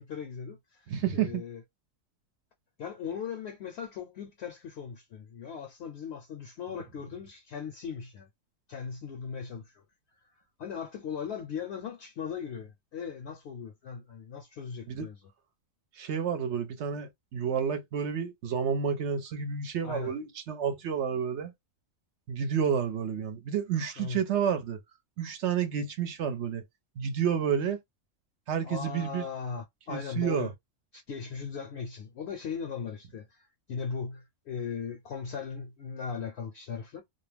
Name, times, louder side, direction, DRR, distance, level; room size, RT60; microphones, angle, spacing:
voice 1, 0.0-1.6 2.8-8.3 8.7-9.8 10.6-15.2 19.8-20.1 24.0-24.2 28.6-30.5 30.9-37.0, left 6 dB, 65° left, 0.7 m, -38 dB
voice 2, 0.9-1.4 14.9-15.1 16.0-21.5 22.3-24.8 25.2-26.6 27.0-27.8 28.5-29.2 29.9-30.5, right 7 dB, 65° right, 0.8 m, -30 dB
2.4 x 2.1 x 3.1 m
omnidirectional pair, 1.4 m